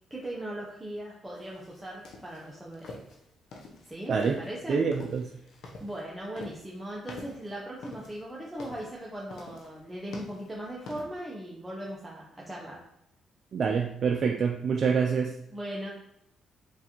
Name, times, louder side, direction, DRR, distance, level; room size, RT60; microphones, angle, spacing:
voice 1, 0.1-3.0 3.9-4.8 5.8-12.8 15.5-15.9, right 1 dB, 10° right, -5 dB, 0.8 m, -39 dB
sound 1, 1.4-11.0, left 2 dB, 75° left, 0.7 m, -47 dB
voice 2, 4.1-4.4 4.7-5.3 13.5-15.3, right 5 dB, 55° right, 2 dB, 0.3 m, -26 dB
4.6 x 2.6 x 2.9 m, 0.81 s
cardioid pair, 90°, 0 cm